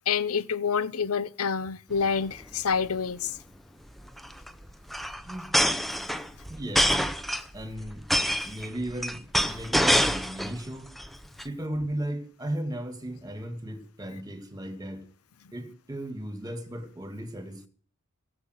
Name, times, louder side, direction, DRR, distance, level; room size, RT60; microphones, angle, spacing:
voice 1, 0.1-3.4, left 6 dB, 90° left, 0.8 m, -27 dB
sound 1, 2.0-2.2 2.4-2.5 2.7-3.0 4.0-10.6 11.0-11.4, equal, ahead, 0.8 m, -26 dB
voice 2, 6.5-7.0 7.5-8.0 8.4-10.9 11.4-15.0 15.5-17.7, right 1 dB, 15° right, 2.3 m, -35 dB
17.0 x 7.3 x 8.2 m
head